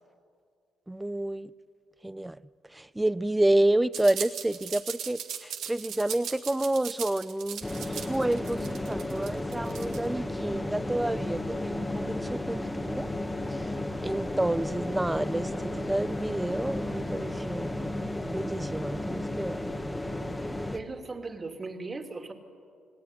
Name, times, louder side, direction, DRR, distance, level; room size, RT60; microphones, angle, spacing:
voice 1, 0.9-1.5 2.0-2.4 2.7-13.1 13.5-13.7 14.0-17.7 18.3-19.6, right 1 dB, 10° right, 0.6 m, -29 dB
sound 1, 3.9-10.1, right 8 dB, 80° right, 2.5 m, -38 dB
sound 2, 7.6-20.8, left 1 dB, 15° left, 1.7 m, -33 dB
sound 3, 10.5-17.3, left 4 dB, 60° left, 3.7 m, -49 dB
voice 2, 20.4-22.3, right 3 dB, 30° right, 2.8 m, -38 dB
29.0 x 18.5 x 9.9 m
cardioid pair, 90°, 0 cm